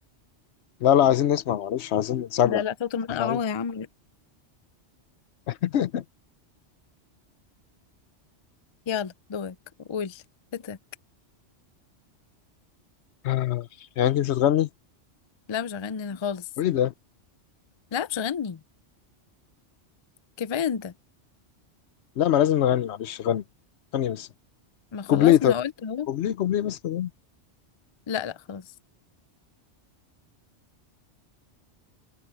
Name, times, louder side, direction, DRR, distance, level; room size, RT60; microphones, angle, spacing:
voice 1, 0.8-2.6 3.1-3.4 5.5-6.0 13.2-13.7 14.0-14.7 16.6-16.9 22.2-23.4 23.9-24.3 25.1-25.5 26.1-27.1, left 11 dB, 70° left, 0.9 m, -23 dB
voice 2, 2.4-3.9 8.9-9.5 9.9-10.2 10.5-10.8 15.5-16.4 17.9-18.6 20.4-20.9 24.9-26.1 28.1-28.6, left 7 dB, 45° left, 0.3 m, -30 dB
omnidirectional pair, 1.2 m